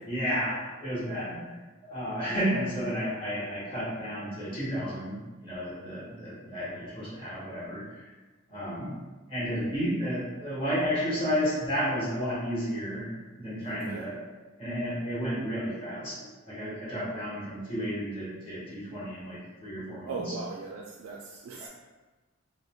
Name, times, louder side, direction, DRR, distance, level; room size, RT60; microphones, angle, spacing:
voice 1, 0.0-1.4 1.8-8.1 8.5-8.9 9.3-13.1 13.4-14.2 14.6-16.2 16.5-20.4, equal, 25° left, -8 dB, 1.1 m, -32 dB
voice 2, 13.7-14.0 20.1-21.7, right 4 dB, 85° right, 0 dB, 0.3 m, -38 dB
3.8 x 2.1 x 2.2 m, 1.2 s
head